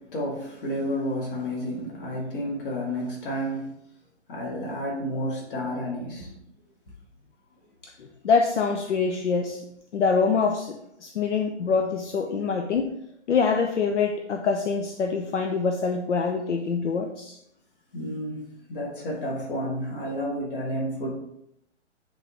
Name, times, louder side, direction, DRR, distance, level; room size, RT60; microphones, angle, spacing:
voice 1, 0.0-3.7 4.3-6.3 17.9-21.1, equal, 45° left, -2 dB, 2.2 m, -31 dB
voice 2, 8.2-9.6 9.9-10.7 11.0-12.9 13.3-17.4, left 5 dB, 75° left, 4 dB, 0.8 m, -24 dB
8.9 x 3.9 x 3.0 m, 0.77 s
hypercardioid pair, 140°, 36 cm